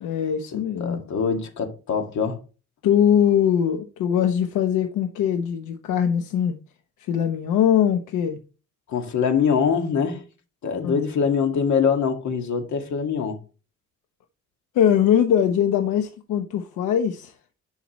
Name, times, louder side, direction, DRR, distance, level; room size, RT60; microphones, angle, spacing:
voice 1, 0.0-1.0 2.8-6.6 7.1-8.4 10.8-11.0 14.7-17.3, left 9 dB, 90° left, 1.0 m, -21 dB
voice 2, 0.5-2.4 8.9-10.2 10.6-13.4, left 6 dB, 70° left, 2.2 m, -23 dB
11.5 x 5.7 x 3.1 m
cardioid pair, 90°, 30 cm